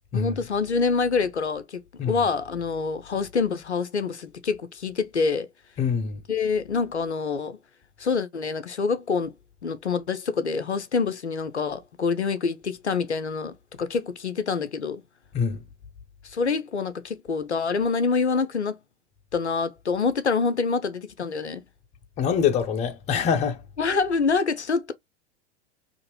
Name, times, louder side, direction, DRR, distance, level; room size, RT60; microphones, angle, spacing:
voice 1, 0.1-5.5 6.3-7.6 8.0-9.3 9.6-15.0 16.2-18.7 19.3-21.6 23.8-24.9, left 5 dB, 85° left, 0.5 m, -26 dB
voice 2, 5.8-6.2 15.3-15.6 22.2-23.6, left 7 dB, 20° left, 0.5 m, -24 dB
2.7 x 2.5 x 2.9 m
figure-of-eight pair, 90°, 33 cm